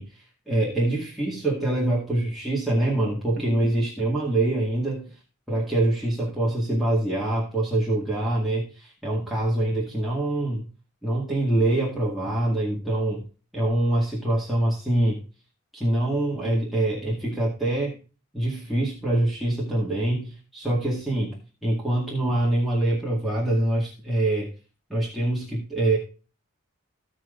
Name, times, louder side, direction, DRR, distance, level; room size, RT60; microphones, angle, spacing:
voice 1, 0.0-5.1 5.5-10.7 11.0-13.3 13.5-15.2 15.7-18.0 18.3-24.5 24.9-26.0, right 1 dB, ahead, -6 dB, 2.0 m, -25 dB
15.5 x 6.1 x 2.5 m, 0.34 s
head